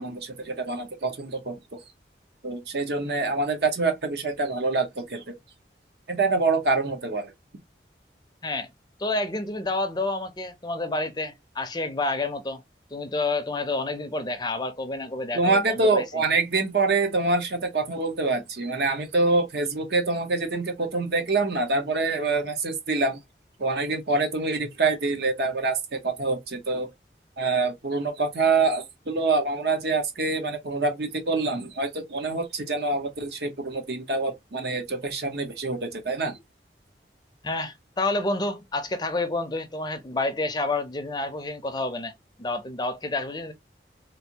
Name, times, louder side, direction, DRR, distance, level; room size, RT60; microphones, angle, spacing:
voice 1, 0.0-1.8 2.4-5.3 6.1-7.3 15.3-23.2 23.6-26.9 27.4-36.4, right 3 dB, 70° right, 0.9 m, -26 dB
voice 2, 9.0-12.6 12.9-16.2 37.4-43.5, left 2 dB, 25° left, 0.5 m, -29 dB
3.3 x 2.5 x 2.8 m
head